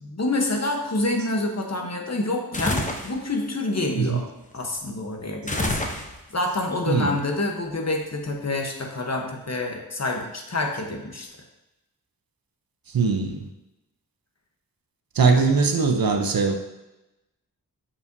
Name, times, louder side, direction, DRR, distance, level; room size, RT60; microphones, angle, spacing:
voice 1, 0.0-4.2 4.5-5.8 6.3-11.3 15.3-15.4, left 2 dB, 40° left, 2 dB, 1.0 m, -27 dB
sound 1, 2.5-3.2 5.5-6.4, left 2 dB, 20° left, 0.8 m, -27 dB
voice 2, 6.9-7.2 12.9-13.5 15.2-16.5, right 4 dB, 65° right, 5 dB, 0.8 m, -21 dB
7.0 x 5.5 x 2.7 m, 0.96 s
wide cardioid pair, 70°, 39 cm